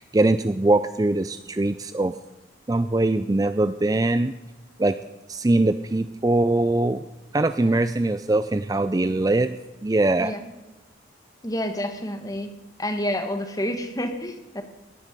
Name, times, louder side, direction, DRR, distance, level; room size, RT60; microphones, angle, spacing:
voice 1, 0.0-2.1 2.7-4.3 4.8-5.0 5.3-7.0 7.3-9.6 9.8-10.3, right 2 dB, 20° right, 11 dB, 0.4 m, -22 dB
voice 2, 11.4-12.5 12.8-14.6, equal, 20° left, 7 dB, 1.5 m, -29 dB
17.0 x 11.0 x 6.8 m, 1.1 s
head